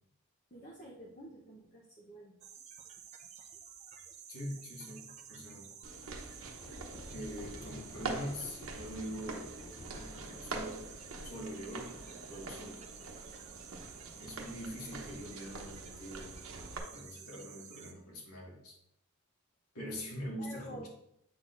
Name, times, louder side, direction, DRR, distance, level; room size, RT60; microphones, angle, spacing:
voice 1, 0.5-2.4 20.4-20.9, equal, 35° left, -3 dB, 0.9 m, -49 dB
sound 1, 2.4-17.9, right 7 dB, 30° right, 0.6 m, -52 dB
voice 2, 4.3-5.7 7.1-9.5 10.2-10.8 11.2-11.9 12.3-12.8 14.2-16.4 16.9-18.8 19.7-20.9, equal, 85° left, -3 dB, 2.0 m, -43 dB
sound 2, 5.8-16.8, right 3 dB, 65° right, 1.0 m, -45 dB
sound 3, 6.6-12.5, left 2 dB, 20° left, 0.5 m, -53 dB
8.0 x 6.1 x 2.5 m, 0.75 s
head